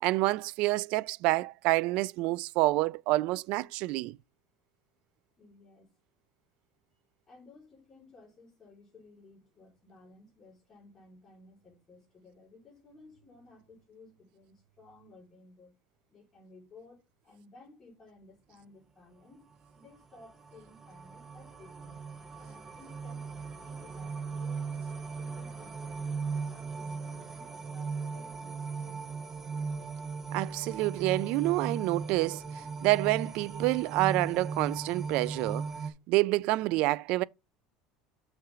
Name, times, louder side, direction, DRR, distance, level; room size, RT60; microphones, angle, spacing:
voice 1, 0.0-4.2 30.3-32.4 32.8-35.7 36.1-37.2, right 19 dB, 55° right, 0.3 m, -28 dB
voice 2, 5.4-5.9 7.3-15.7 16.1-19.5 19.7-22.0 22.4-23.3 23.6-29.0, left 2 dB, 15° left, 4.7 m, -56 dB
sound 1, 19.7-35.9, right 4 dB, 15° right, 0.9 m, -38 dB
6.8 x 5.7 x 3.7 m
cardioid pair, 160°, 2 cm